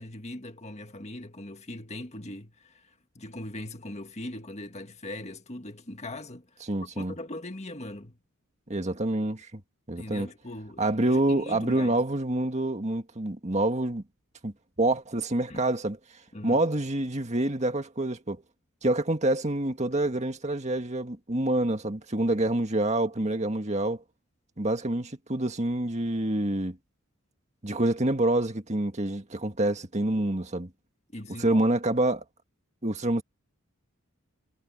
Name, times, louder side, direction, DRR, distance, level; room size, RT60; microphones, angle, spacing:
voice 1, 0.0-2.9 3.2-6.5 7.0-8.2 10.0-12.0 15.5-15.6 16.3-16.6 31.1-31.7, left 1 dB, 30° left, 1.9 m, -40 dB
voice 2, 6.7-7.1 8.7-9.6 9.9-10.3 10.8-14.0 14.4-14.5 14.8-16.0 16.4-18.4 18.8-24.0 24.6-26.8 27.6-30.7 31.4-32.2 32.8-33.2, right 1 dB, 30° right, 1.8 m, -27 dB
head